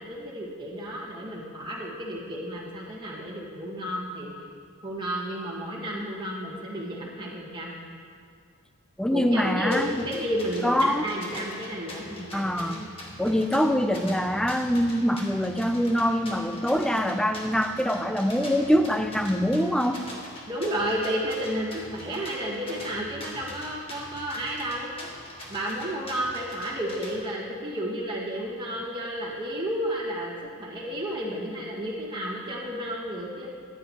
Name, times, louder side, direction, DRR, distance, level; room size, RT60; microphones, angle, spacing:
voice 1, 0.0-4.3 4.8-7.8 9.1-12.9 20.5-24.9 25.5-33.5, equal, 20° right, -5 dB, 1.7 m, -32 dB
voice 2, 9.0-10.0 10.6-11.0 12.3-12.8 13.2-20.0, equal, 5° left, 8 dB, 0.3 m, -24 dB
sound 1, 9.7-27.2, left 1 dB, 25° left, 1.5 m, -43 dB
15.0 x 9.7 x 2.9 m, 2.2 s
head